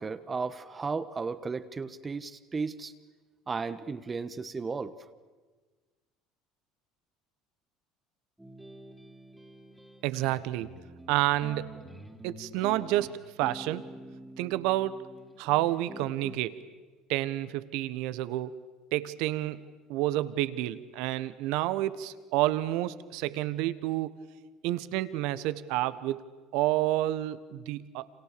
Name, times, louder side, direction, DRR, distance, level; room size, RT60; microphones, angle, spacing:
voice 1, 0.0-2.9 3.5-5.0, right 4 dB, 25° right, 11 dB, 1.3 m, -34 dB
sound 1, 8.4-16.4, right 1 dB, 5° right, 3.1 m, -47 dB
voice 2, 10.0-10.7 11.1-11.7 12.2-13.9 14.4-15.0 15.4-16.6 17.1-18.6 18.9-24.1 24.6-26.2 26.5-28.1, right 15 dB, 70° right, 15 dB, 1.3 m, -29 dB
29.5 x 27.0 x 6.9 m, 1.3 s
hypercardioid pair, 75°, 0 cm